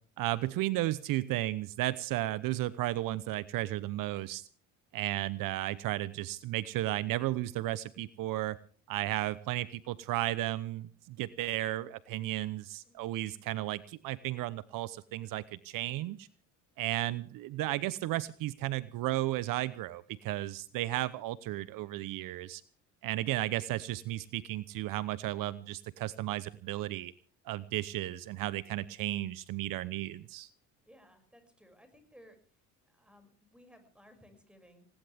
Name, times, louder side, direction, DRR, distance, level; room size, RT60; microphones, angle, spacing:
voice 1, 0.2-4.5 4.9-8.6 8.9-16.3 16.8-22.6 23.0-27.1 27.4-30.5, right 16 dB, 65° right, 17 dB, 0.9 m, -34 dB
voice 2, 12.9-13.2 30.9-32.4 32.9-34.9, equal, 5° right, 7 dB, 6.5 m, -59 dB
20.0 x 18.5 x 3.5 m, 0.40 s
supercardioid pair, 80°, 35 cm